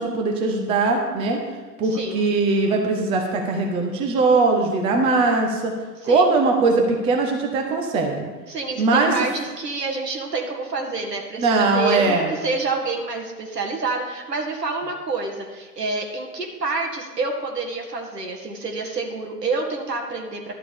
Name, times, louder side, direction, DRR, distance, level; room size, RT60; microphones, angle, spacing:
voice 1, 0.0-1.4 1.8-5.7 6.0-8.2 8.8-9.1 11.4-12.3, right 3 dB, 10° right, 2 dB, 0.7 m, -20 dB
voice 2, 1.9-2.3 6.0-6.3 8.5-20.5, right 3 dB, 80° right, 1 dB, 2.1 m, -28 dB
11.5 x 4.9 x 7.0 m, 1.3 s
figure-of-eight pair, 115°, 48 cm